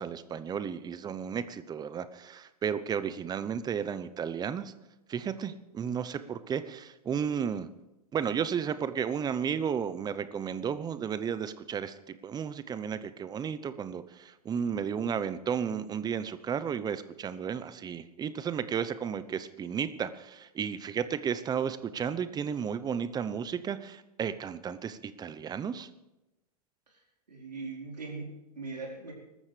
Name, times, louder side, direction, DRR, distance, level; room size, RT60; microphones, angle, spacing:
voice 1, 0.0-4.7 5.1-7.7 8.1-25.9, right 7 dB, 20° right, 13 dB, 0.8 m, -33 dB
voice 2, 27.3-29.1, right 3 dB, 90° right, -2 dB, 4.4 m, -40 dB
25.0 x 13.5 x 3.4 m, 1.0 s
hypercardioid pair, 105°, 20 cm